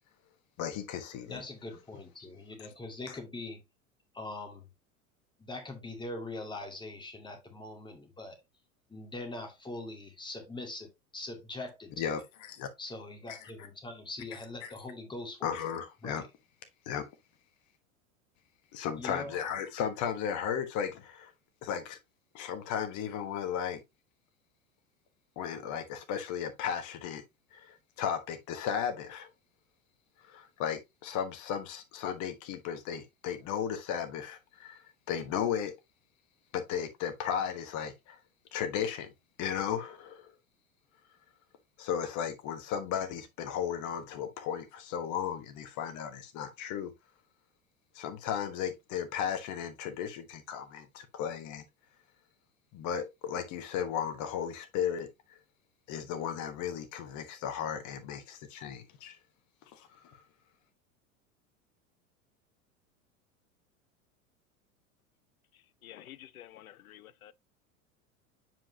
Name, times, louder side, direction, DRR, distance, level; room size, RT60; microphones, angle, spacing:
voice 1, 0.6-1.4 2.6-2.7 3.1-3.2 12.0-12.7 13.3-13.7 14.6-14.7 15.4-16.2 16.8-17.0 18.7-21.3 21.6-22.0 22.3-23.8 25.4-27.2 27.5-29.3 30.3-35.7 36.5-38.2 38.5-39.1 39.4-40.3 41.8-46.9 47.9-51.6 52.7-55.4 55.9-59.2 59.7-60.2, left 8 dB, 45° left, 1.3 m, -35 dB
voice 2, 1.3-3.6 4.1-4.6 5.4-8.4 8.9-11.9 12.8-15.4 16.0-16.3 19.0-19.4, left 2 dB, 10° left, 2.2 m, -42 dB
voice 3, 65.5-67.3, left 12 dB, 80° left, 0.6 m, -51 dB
7.6 x 4.9 x 2.7 m
figure-of-eight pair, 85°, 42 cm